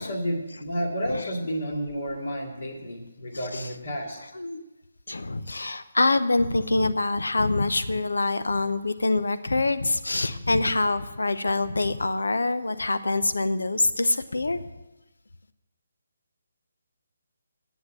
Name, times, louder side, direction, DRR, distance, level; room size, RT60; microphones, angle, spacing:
voice 1, 0.0-4.2, equal, 50° left, 2 dB, 2.5 m, -31 dB
voice 2, 5.1-14.6, left 2 dB, 65° left, 13 dB, 0.8 m, -25 dB
10.5 x 8.1 x 9.0 m, 1.1 s
figure-of-eight pair, 145°, 0 cm